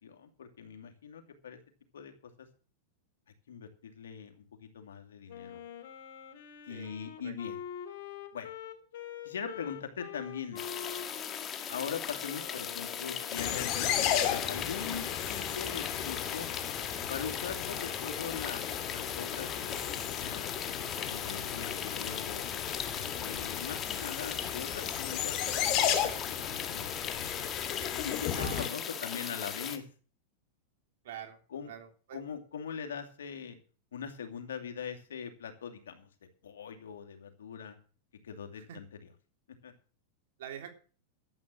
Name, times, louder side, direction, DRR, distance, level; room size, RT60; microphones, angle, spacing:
voice 1, 0.0-1.6 1.9-2.1 2.4-2.5 3.5-5.6 6.7-7.6 8.3-8.5 9.2-10.7 11.7-16.5 17.1-20.5 21.0-22.4 23.2-26.9 28.0-29.8 31.5-31.7 32.1-33.6 33.9-36.1 36.4-37.8 38.2-38.8 39.6-39.7, left 7 dB, 90° left, 6 dB, 2.6 m, -41 dB
Wind instrument woodwind instrument, 5.3-13.8, left 9 dB, 70° left, 2.9 m, -45 dB
voice 2, 6.7-7.3 28.3-28.8 31.0-31.4 31.6-32.2 38.6-38.8 40.4-40.7, right 9 dB, 75° right, 5 dB, 3.5 m, -45 dB
sound 1, 10.6-29.8, left 8 dB, 30° left, 1.8 m, -38 dB
sound 2, 13.3-28.7, left 10 dB, 45° left, 2.5 m, -35 dB
12.5 x 8.3 x 7.7 m, 0.40 s
hypercardioid pair, 120°, 0 cm